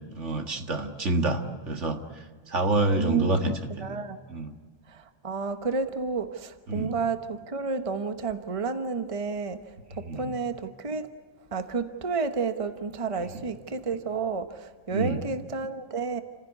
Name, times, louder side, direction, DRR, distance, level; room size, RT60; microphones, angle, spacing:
voice 1, 0.2-1.4 1.7-2.0 2.5-4.0 4.3-4.5 6.7-6.9 9.9-10.3 14.9-15.2, right 2 dB, 65° right, 5 dB, 2.2 m, -27 dB
voice 2, 3.0-3.5 3.8-4.2 4.9-9.6 10.0-11.1 11.5-16.2, right 4 dB, 30° right, 8 dB, 1.0 m, -31 dB
28.5 x 15.5 x 9.6 m, 1.5 s
omnidirectional pair, 1.3 m